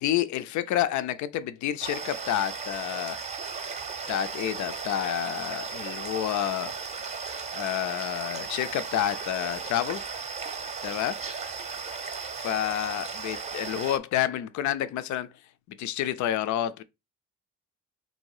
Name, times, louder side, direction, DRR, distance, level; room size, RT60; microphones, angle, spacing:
voice 1, 0.0-3.2 4.1-6.7 7.2-10.0 10.8-11.2 12.3-15.3 15.7-16.8, left 12 dB, 70° left, 0.5 m, -29 dB
sound 1, 1.8-14.0, right 5 dB, 25° right, 0.6 m, -36 dB
3.4 x 2.7 x 4.6 m
cardioid pair, 90°, 30 cm